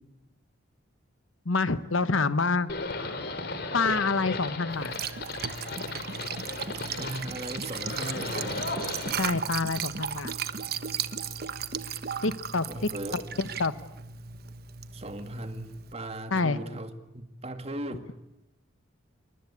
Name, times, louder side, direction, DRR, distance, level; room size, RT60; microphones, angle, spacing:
voice 1, 1.4-2.7 3.7-4.9 9.2-10.3 12.2-12.7 13.1-13.7 16.3-16.6, left 4 dB, 80° left, 13 dB, 1.2 m, -27 dB
Livestock farm animals working animals, 2.7-9.1, left 2 dB, 50° left, 3.3 m, -35 dB
Liquid, 4.7-15.9, right 7 dB, 50° right, 1.2 m, -36 dB
voice 2, 7.0-8.7 12.7-13.2 14.9-18.1, right 1 dB, 30° right, 8 dB, 2.1 m, -38 dB
28.0 x 24.0 x 8.4 m, 0.95 s
head